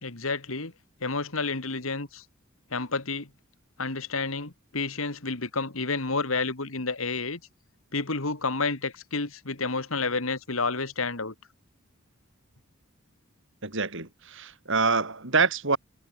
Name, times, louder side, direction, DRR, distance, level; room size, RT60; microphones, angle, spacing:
voice 1, 0.0-0.7 1.0-2.2 2.7-3.3 3.8-7.4 7.9-11.3, left 3 dB, 70° left, 2.4 m, -30 dB
voice 2, 13.6-15.8, right 4 dB, 60° right, 5.6 m, -26 dB
head